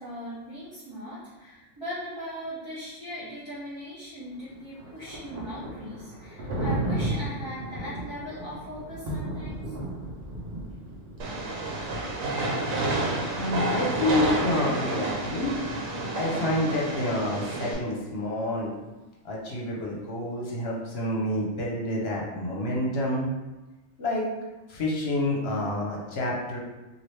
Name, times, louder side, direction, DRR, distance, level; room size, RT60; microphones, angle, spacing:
voice 1, 0.0-9.8, equal, 25° right, -12 dB, 0.7 m, -39 dB
Thunder, 4.3-16.1, right 1 dB, 55° right, 0.8 m, -36 dB
Train, 11.2-17.7, right 2 dB, 85° right, 1.2 m, -29 dB
voice 2, 13.4-15.5 16.1-18.7 19.2-23.2 24.0-24.2 24.7-26.6, left 1 dB, 55° left, -3 dB, 0.9 m, -28 dB
2.9 x 2.6 x 3.1 m, 1.1 s
omnidirectional pair, 1.4 m